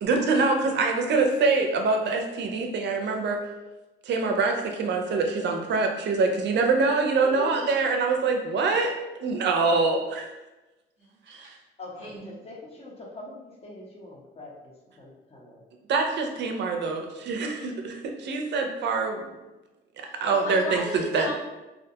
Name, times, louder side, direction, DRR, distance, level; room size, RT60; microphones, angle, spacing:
voice 1, 0.0-3.4 4.1-10.3 11.3-11.4 15.9-19.4 20.2-20.8 21.1-21.3, right 4 dB, 60° right, 3 dB, 0.4 m, -25 dB
voice 2, 7.2-7.6 11.8-15.6, left 2 dB, 30° left, -3 dB, 0.7 m, -42 dB
voice 3, 11.0-11.6 12.0-12.3 20.0-21.3, equal, 85° left, -9 dB, 1.4 m, -36 dB
2.5 x 2.2 x 2.7 m, 1.1 s
cardioid pair, 90°, 20 cm